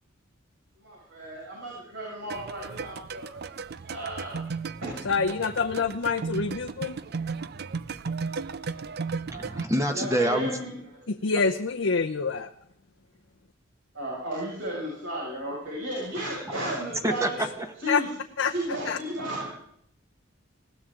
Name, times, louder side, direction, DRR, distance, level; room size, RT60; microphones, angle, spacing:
voice 1, 0.8-3.4 3.9-4.5 4.8-5.1 9.9-10.9 13.9-17.4 17.8-18.1 18.5-19.5, right 1 dB, 80° right, -5 dB, 6.2 m, -34 dB
sound 1, 2.3-9.7, right 5 dB, 55° right, 0.5 m, -35 dB
voice 2, 5.1-7.0 11.2-12.5 17.9-18.0 18.4-18.5 18.9-19.0, left 4 dB, 80° left, 5 dB, 0.7 m, -26 dB
voice 3, 9.3-10.5 17.0-17.7, right 1 dB, 15° right, 5 dB, 1.1 m, -26 dB
20.0 x 17.0 x 3.8 m, 0.68 s
head